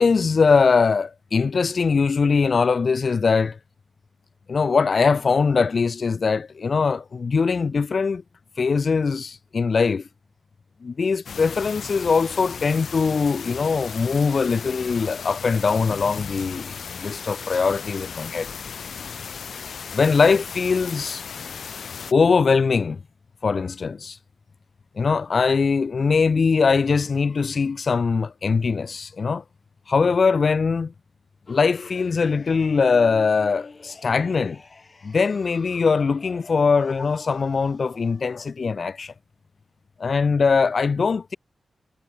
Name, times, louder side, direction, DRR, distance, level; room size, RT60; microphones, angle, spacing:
voice 1, 0.0-3.6 4.5-8.2 8.6-10.0 10.8-18.5 19.9-21.2 22.1-23.0 23.4-24.2 25.0-29.4 29.9-30.9 31.5-34.6 35.0-39.1 40.0-41.4, left 5 dB, 55° left, 0.3 m, -21 dB
sound 1, 11.3-22.1, left 6 dB, 75° left, 0.7 m, -36 dB
sound 2, 31.5-38.5, left 3 dB, 35° left, 5.0 m, -45 dB
wide cardioid pair, 95°, 0 cm